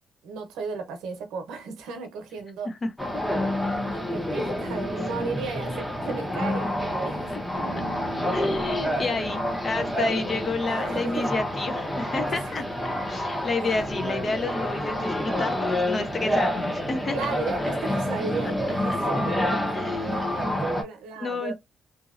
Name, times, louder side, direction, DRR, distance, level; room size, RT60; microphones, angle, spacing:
voice 1, 0.2-2.7 3.4-7.3 8.4-9.2 9.9-11.3 13.0-13.9 17.1-19.6 20.0-21.5, right 4 dB, 90° right, 0.8 m, -35 dB
voice 2, 2.6-3.3 7.3-7.4 8.3-12.6 13.1-17.2 18.4-18.5 18.9-19.0 19.7-20.4 21.2-21.5, left 3 dB, 40° left, 0.7 m, -30 dB
sound 1, 3.0-20.8, left 1 dB, 10° left, 0.9 m, -28 dB
2.9 x 2.7 x 2.4 m
cardioid pair, 90°, 0 cm